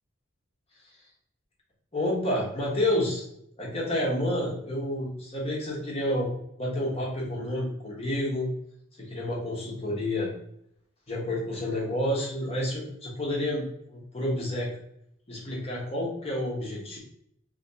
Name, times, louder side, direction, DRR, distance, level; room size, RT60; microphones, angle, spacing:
voice 1, 1.9-3.3 3.6-6.3 6.6-8.5 9.0-10.3 11.1-14.8 15.3-17.0, left 1 dB, 30° left, -3 dB, 1.0 m, -29 dB
3.2 x 2.8 x 2.7 m, 0.73 s
head